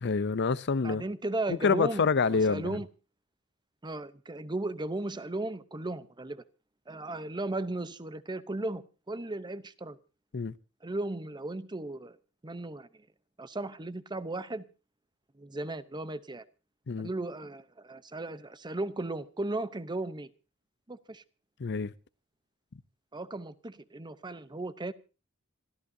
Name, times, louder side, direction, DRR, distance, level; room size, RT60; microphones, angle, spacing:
voice 1, 0.0-1.0 1.5-2.7 10.3-10.5 16.9-17.1 21.6-21.9, left 4 dB, 55° left, 0.6 m, -27 dB
voice 2, 0.8-2.9 3.8-6.4 6.9-10.0 10.8-12.2 12.4-12.9 13.4-14.7 15.4-16.4 17.0-20.3 20.9-21.2 23.1-24.9, right 2 dB, 20° right, 0.8 m, -36 dB
26.5 x 14.0 x 2.7 m
head